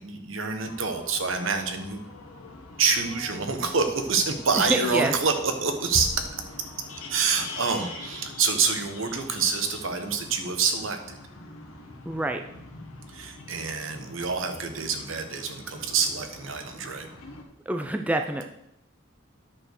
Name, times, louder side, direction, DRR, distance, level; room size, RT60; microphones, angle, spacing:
voice 1, 0.0-2.0 2.8-6.1 7.1-11.2 13.1-17.1, right 5 dB, 70° right, 6 dB, 1.2 m, -27 dB
sound 1, 0.6-17.4, left 2 dB, 85° left, 1.6 m, -44 dB
voice 2, 4.6-5.1 12.1-12.4 17.7-18.4, right 1 dB, 5° right, 5 dB, 0.4 m, -26 dB
Bass drum, 5.9-7.3, left 1 dB, 30° left, 0.8 m, -36 dB
10.0 x 4.5 x 6.4 m, 0.82 s
head